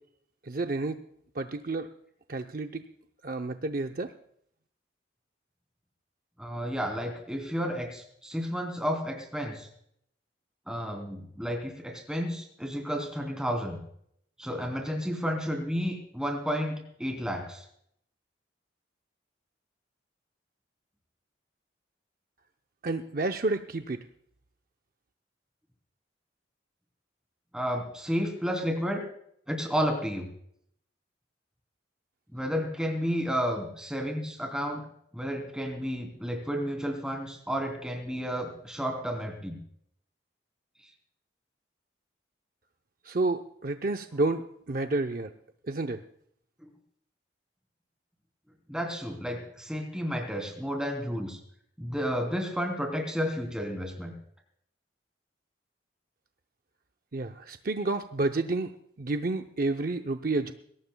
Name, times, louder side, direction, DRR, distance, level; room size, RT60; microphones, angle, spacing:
voice 1, 0.5-1.0 1.4-1.9 2.3-2.8 3.2-4.1 22.8-24.0 43.1-44.4 44.7-45.3 45.7-46.0 57.1-58.7 59.0-60.5, right 2 dB, 50° right, 6 dB, 0.6 m, -30 dB
voice 2, 6.4-9.7 10.7-13.8 14.4-17.6 27.5-29.0 29.5-30.3 32.3-34.8 35.1-39.6 48.7-51.4 51.8-54.1, equal, 5° right, 2 dB, 3.1 m, -31 dB
22.0 x 17.5 x 2.3 m, 0.69 s
head